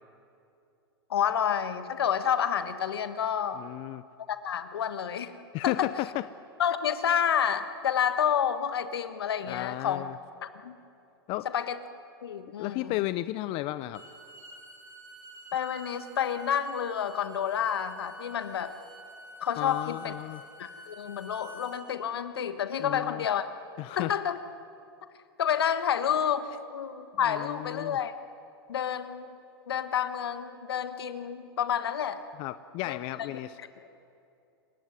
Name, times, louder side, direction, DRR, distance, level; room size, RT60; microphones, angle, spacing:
voice 1, 1.1-3.6 4.3-5.3 5.6-5.9 6.6-10.0 10.4-10.8 11.5-11.8 12.2-13.1 15.5-18.7 19.4-20.1 20.6-23.4 23.9-24.4 25.4-28.1 28.7-29.4 29.7-32.2 32.8-33.0, left 8 dB, 75° left, 11 dB, 1.4 m, -29 dB
voice 2, 3.6-4.0 5.5-6.3 9.5-10.1 11.3-11.5 12.6-14.0 19.6-20.4 22.8-23.2 23.8-24.2 27.3-28.0 32.4-33.6, left 17 dB, 45° left, 15 dB, 0.6 m, -33 dB
Bowed string instrument, 13.8-21.8, right 1 dB, 25° right, 5.5 m, -49 dB
27.0 x 15.5 x 9.7 m, 2.7 s
hypercardioid pair, 100°, 13 cm